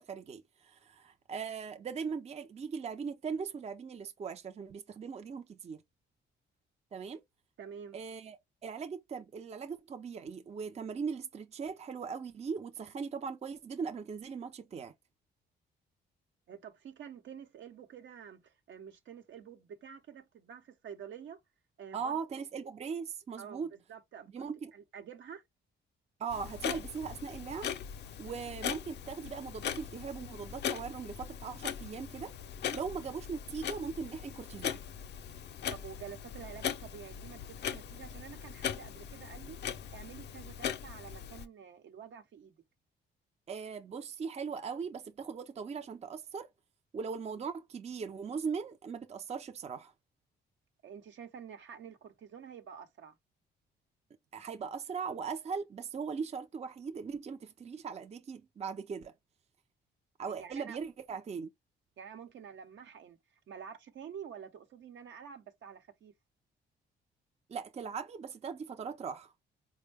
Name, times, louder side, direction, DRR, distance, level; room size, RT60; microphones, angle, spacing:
voice 1, 0.0-5.8 6.9-7.2 7.9-14.9 21.9-23.7 24.3-24.7 26.2-27.7 28.2-32.3 32.7-34.8 43.5-46.5 46.9-49.9 54.3-59.1 60.2-61.5 67.5-69.3, right 6 dB, 35° right, 0.5 m, -39 dB
voice 2, 7.6-8.0 16.5-21.4 21.8-22.2 23.4-24.4 24.7-25.4 35.7-39.6 39.9-42.6 50.8-53.2 60.2-60.8 62.0-63.2 63.5-66.1, right 8 dB, 70° right, 0.9 m, -48 dB
Clock, 26.3-41.5, left 8 dB, 60° left, 0.6 m, -40 dB
4.4 x 2.1 x 3.3 m
cardioid pair, 90°, 20 cm